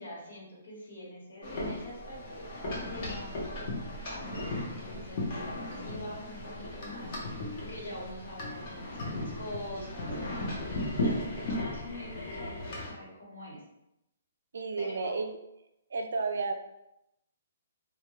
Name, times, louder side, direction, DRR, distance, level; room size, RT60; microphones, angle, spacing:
voice 1, 0.0-2.4 2.9-3.3 3.6-13.6 14.8-15.2, left 1 dB, 90° left, -5 dB, 1.3 m, -44 dB
sound 1, 1.4-12.9, left 1 dB, 45° left, 0.8 m, -36 dB
voice 2, 14.5-15.3 15.9-16.5, right 4 dB, 75° right, 6 dB, 0.4 m, -32 dB
2.5 x 2.2 x 3.1 m, 0.85 s
hypercardioid pair, 155°, 0 cm